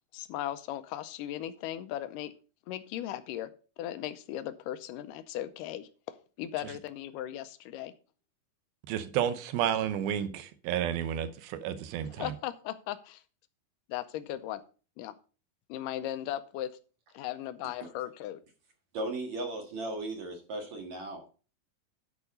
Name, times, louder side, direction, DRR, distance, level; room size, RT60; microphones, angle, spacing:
voice 1, 0.1-2.3 2.7-3.5 3.8-7.9 12.2-13.2 13.9-14.6 15.0-15.1 15.7-16.7 17.1-18.4, left 12 dB, 80° left, 2.0 m, -37 dB
voice 2, 8.9-12.3, right 10 dB, 90° right, 2.7 m, -31 dB
voice 3, 18.9-21.3, right 2 dB, 55° right, 2.7 m, -36 dB
11.0 x 4.9 x 5.2 m
omnidirectional pair, 4.2 m